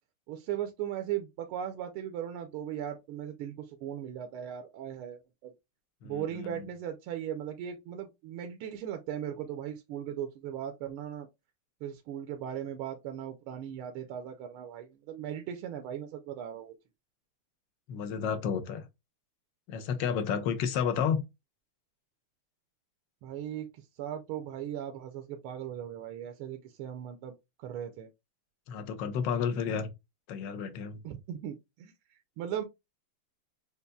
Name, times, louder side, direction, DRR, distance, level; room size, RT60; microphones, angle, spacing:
voice 1, 0.3-5.5 6.0-11.3 11.8-16.7 23.2-27.3 27.6-28.1 31.0-32.6, right 10 dB, 80° right, 1.5 m, -38 dB
voice 2, 6.0-6.7 17.9-18.9 19.7-21.2 28.7-29.9 30.3-31.0, left 7 dB, 65° left, 1.4 m, -31 dB
6.6 x 2.6 x 2.2 m
omnidirectional pair, 2.4 m